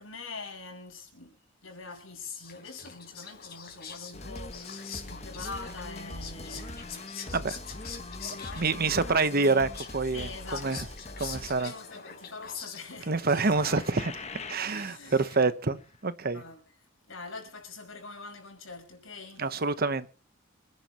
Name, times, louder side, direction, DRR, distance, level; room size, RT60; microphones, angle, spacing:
voice 1, 0.0-7.1 7.7-7.8 8.2-9.6 10.1-11.0 11.4-13.3 14.6-15.4 16.3-16.7 17.1-19.5, left 3 dB, 80° left, 5.9 m, -44 dB
Whispering, 1.9-13.9, left 7 dB, 50° left, 3.9 m, -45 dB
sound 1, 4.1-12.3 13.5-14.8 15.1-15.5 15.8-15.9, left 2 dB, 35° left, 1.3 m, -42 dB
voice 2, 8.6-10.3 10.6-10.8 11.2-11.7 13.1-16.4 19.4-20.1, right 3 dB, 50° right, 1.0 m, -27 dB
26.0 x 11.0 x 3.0 m
head